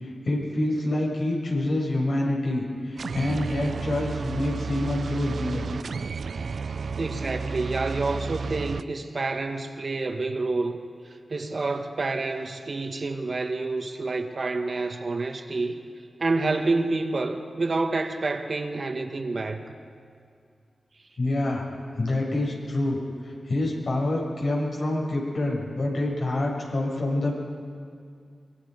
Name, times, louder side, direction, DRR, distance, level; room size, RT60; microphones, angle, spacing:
voice 1, 0.0-5.7 21.2-21.6 22.0-23.0 23.5-27.3, left 1 dB, 75° left, -3 dB, 7.4 m, -27 dB
sound 1, 3.0-8.8, right 5 dB, 75° right, 0.5 m, -32 dB
voice 2, 7.0-10.8 11.3-15.8 16.2-19.6, right 3 dB, 55° right, 5 dB, 1.8 m, -28 dB
25.0 x 23.0 x 5.5 m, 2.2 s
cardioid pair, 55°, 0 cm